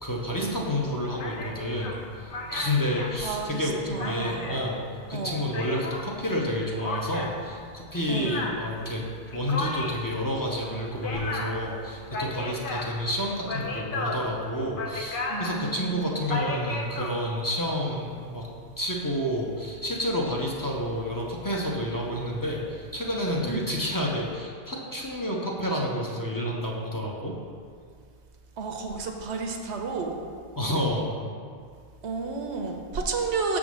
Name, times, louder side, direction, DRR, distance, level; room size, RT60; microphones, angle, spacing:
voice 1, 0.0-4.8 5.1-9.0 9.3-18.5 18.8-27.3 30.6-31.1, equal, 20° left, -3 dB, 0.7 m, -29 dB
sound 1, 1.2-6.1 6.8-17.1, left 2 dB, 55° left, 0.8 m, -35 dB
voice 2, 3.2-4.6 5.1-5.4 8.1-8.4 15.3-16.2 23.4-23.7 28.6-30.2 32.0-33.6, right 4 dB, 85° right, 3 dB, 1.0 m, -32 dB
6.7 x 3.7 x 6.2 m, 2.1 s
omnidirectional pair, 1.1 m